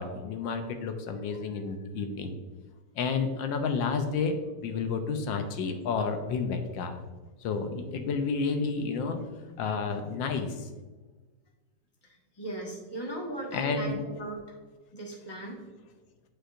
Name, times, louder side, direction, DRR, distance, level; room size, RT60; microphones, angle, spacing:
voice 1, 0.0-2.3 3.0-4.4 4.6-7.0 7.4-9.2 9.6-10.7 13.5-14.0, left 5 dB, 80° left, 6 dB, 1.3 m, -30 dB
voice 2, 12.0-14.6 14.9-15.6, right 1 dB, 15° left, -2 dB, 1.1 m, -38 dB
8.9 x 4.6 x 2.5 m, 1.3 s
omnidirectional pair, 2.1 m